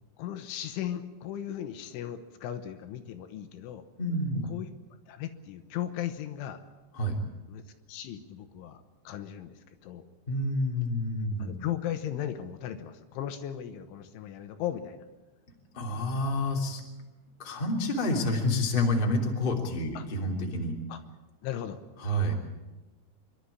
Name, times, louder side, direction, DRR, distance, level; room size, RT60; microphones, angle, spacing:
voice 1, 0.2-3.9 4.5-4.7 5.1-6.6 7.5-7.6 7.9-10.1 11.4-15.1 20.0-20.1 20.9-21.0 21.4-21.8, left 11 dB, 75° left, 8 dB, 3.4 m, -37 dB
voice 2, 4.0-4.5 7.0-7.2 10.3-11.5 15.7-16.8 17.4-20.7 22.0-22.3, left 1 dB, 15° left, 0 dB, 1.9 m, -28 dB
27.0 x 12.0 x 9.9 m, 1.2 s
omnidirectional pair, 5.8 m